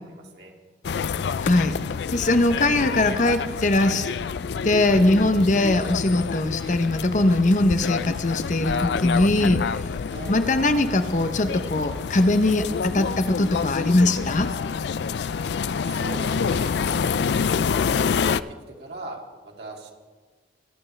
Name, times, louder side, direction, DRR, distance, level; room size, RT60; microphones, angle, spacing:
voice 1, 0.1-0.5 10.1-10.4 15.8-16.7 17.7-18.4 18.7-19.9, right 2 dB, 65° right, 0 dB, 2.6 m, -39 dB
sound 1, 0.8-18.4, left 6 dB, 70° left, 0.4 m, -27 dB
voice 2, 1.4-1.8 2.1-4.1 4.6-9.8 10.3-14.5, left 2 dB, 45° left, 9 dB, 0.7 m, -21 dB
25.0 x 10.5 x 3.3 m, 1.4 s
head